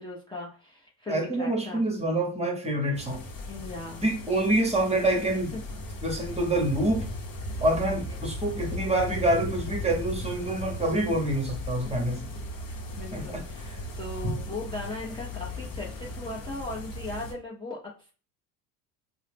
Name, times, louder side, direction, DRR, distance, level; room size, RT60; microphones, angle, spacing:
voice 1, 0.0-1.8 3.5-4.0 5.2-5.4 6.0-6.2 7.5-7.6 8.1-8.2 12.6-18.1, left 2 dB, 10° left, 0.7 m, -39 dB
voice 2, 1.1-3.2 4.0-5.6 6.0-7.1 7.6-12.3 13.1-13.8 14.2-14.3, right 1 dB, 15° right, 1.0 m, -27 dB
sound 1, 2.9-17.3, left 1 dB, 45° left, 0.9 m, -37 dB
2.7 x 2.1 x 3.4 m
hypercardioid pair, 75°, 47 cm